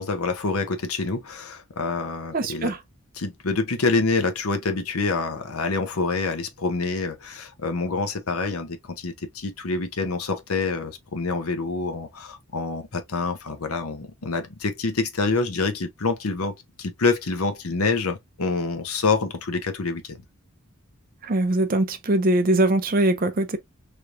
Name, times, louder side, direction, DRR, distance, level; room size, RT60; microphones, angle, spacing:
voice 1, 0.0-2.7 3.2-20.2, left 3 dB, 80° left, 0.8 m, -26 dB
voice 2, 2.3-2.8 21.2-23.6, right 1 dB, 40° right, 0.6 m, -22 dB
3.4 x 3.1 x 2.5 m
head